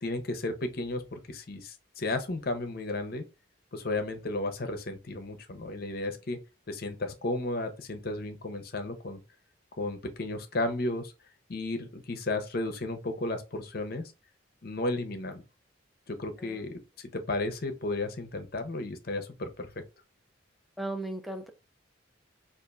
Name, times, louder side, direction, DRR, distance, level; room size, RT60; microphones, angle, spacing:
voice 1, 0.0-3.2 3.7-6.4 6.7-9.2 9.8-11.1 11.5-14.0 14.6-15.4 16.1-16.8 17.1-19.7, left 2 dB, 50° left, 0.7 m, -33 dB
voice 2, 20.8-21.5, right 2 dB, ahead, 0.4 m, -36 dB
5.0 x 2.5 x 2.3 m
head